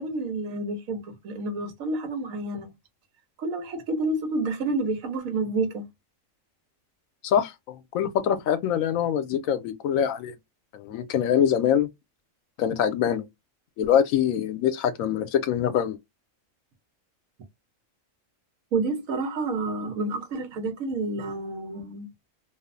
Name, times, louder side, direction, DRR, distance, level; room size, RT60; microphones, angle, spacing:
voice 1, 0.0-2.7 3.4-5.8 18.7-22.1, right 2 dB, 90° right, 1.2 m, -29 dB
voice 2, 7.2-10.3 10.7-11.9 12.6-13.2 13.8-16.0, left 9 dB, 85° left, 1.0 m, -24 dB
2.8 x 2.0 x 2.4 m
omnidirectional pair, 1.4 m